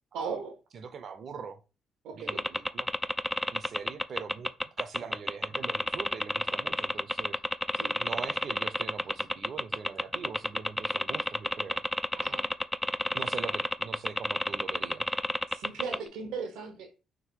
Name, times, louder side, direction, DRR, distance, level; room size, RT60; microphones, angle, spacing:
voice 1, 0.1-0.6 2.0-2.4 5.0-5.2 7.7-7.9 12.1-12.5 15.5-16.9, right 5 dB, 90° right, 1.3 m, -38 dB
voice 2, 0.7-1.6 2.1-2.9 3.5-4.5 4.8-7.4 7.9-11.8 13.1-15.0, right 6 dB, 55° right, 0.7 m, -42 dB
sound 1, 2.3-16.1, left 1 dB, 5° left, 0.3 m, -29 dB
3.8 x 2.6 x 4.7 m
cardioid pair, 90°, 0 cm